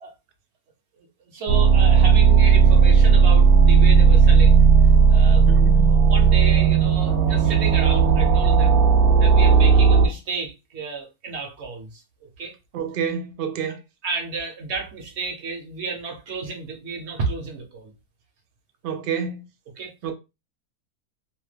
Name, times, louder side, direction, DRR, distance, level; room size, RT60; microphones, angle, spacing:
voice 1, 1.0-4.6 5.1-5.5 5.9-8.8 9.2-12.0 12.4-12.5 14.0-17.9 19.8-20.1, right 4 dB, 55° right, 1.0 m, -32 dB
sound 1, 1.5-10.1, right 6 dB, 75° right, 1.0 m, -15 dB
voice 2, 5.5-5.9 12.7-13.8 18.8-19.4 20.0-20.1, right 7 dB, 90° right, 0.4 m, -28 dB
2.7 x 2.2 x 3.2 m
omnidirectional pair, 1.6 m